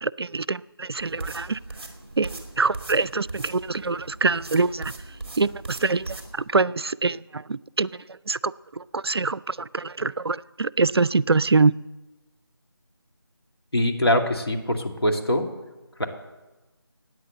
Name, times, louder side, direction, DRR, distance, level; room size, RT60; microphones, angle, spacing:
voice 1, 0.0-1.6 2.2-4.9 5.4-11.7, right 3 dB, 75° right, 0.4 m, -25 dB
sound 1, 1.0-6.3, right 2 dB, 25° right, 2.1 m, -39 dB
voice 2, 13.7-15.4 16.0-16.1, left 1 dB, 75° left, 2.3 m, -23 dB
14.0 x 9.3 x 7.8 m
figure-of-eight pair, 170°, 13 cm